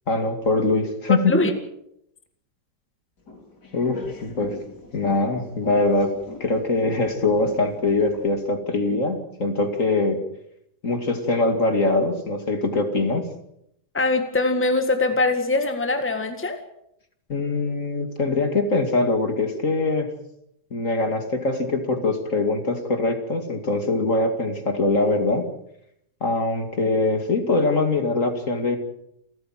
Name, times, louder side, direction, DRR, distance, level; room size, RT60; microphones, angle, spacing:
voice 1, 0.1-1.4 3.7-4.6 4.9-10.2 10.8-13.2 17.3-20.1 20.7-25.5 26.2-28.8, left 2 dB, 50° left, 6 dB, 2.8 m, -23 dB
sound 1, 3.2-8.4, left 3 dB, 85° left, 4.5 m, -41 dB
voice 2, 13.9-16.6, left 2 dB, 5° left, 6 dB, 1.9 m, -22 dB
28.5 x 14.5 x 7.6 m, 0.76 s
omnidirectional pair, 1.7 m